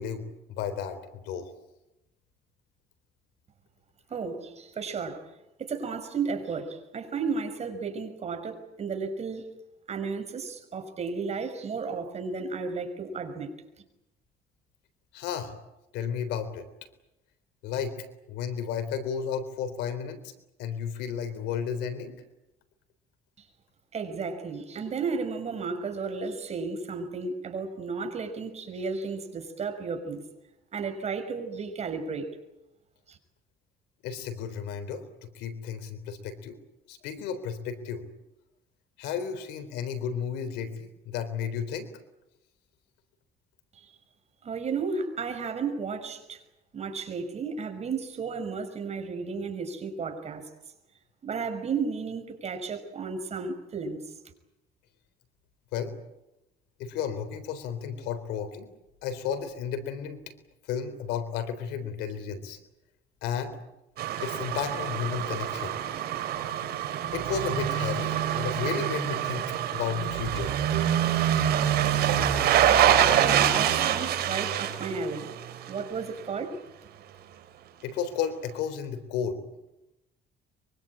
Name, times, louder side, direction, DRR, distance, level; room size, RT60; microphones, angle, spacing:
voice 1, 0.0-1.5 15.1-15.5 15.9-16.7 17.6-20.3 20.6-22.2 34.0-36.6 36.9-38.0 39.0-41.9 55.7-55.9 56.8-58.7 59.0-60.2 60.6-62.6 63.2-63.6 64.2-65.8 67.1-70.5 77.8-79.4, left 7 dB, 90° left, 11 dB, 3.8 m, -33 dB
voice 2, 4.1-5.2 5.6-9.5 9.9-13.5 23.4-23.5 23.9-30.2 30.7-32.3 33.1-33.2 43.7-44.0 44.4-46.4 46.7-50.5 51.2-54.1 73.2-75.3 75.7-76.6, right 5 dB, 40° right, 7 dB, 5.8 m, -33 dB
sound 1, 64.0-75.9 76.2-76.3, right 10 dB, 70° right, 3.9 m, -26 dB
24.5 x 24.0 x 8.7 m, 0.91 s
cardioid pair, 110°, 17 cm